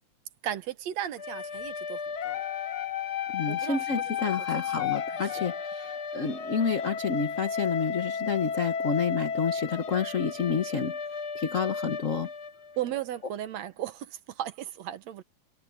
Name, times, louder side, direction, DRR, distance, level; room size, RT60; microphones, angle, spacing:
voice 1, 0.4-2.4 3.5-4.3 4.7-5.0 5.2-5.5 12.8-15.2, right 11 dB, 70° right, 2.2 m, -36 dB
sound 1, 1.2-13.0, left 7 dB, 60° left, 1.0 m, -33 dB
voice 2, 3.3-11.0 11.3-12.3, left 6 dB, 80° left, 0.7 m, -29 dB
omnidirectional pair, 3.3 m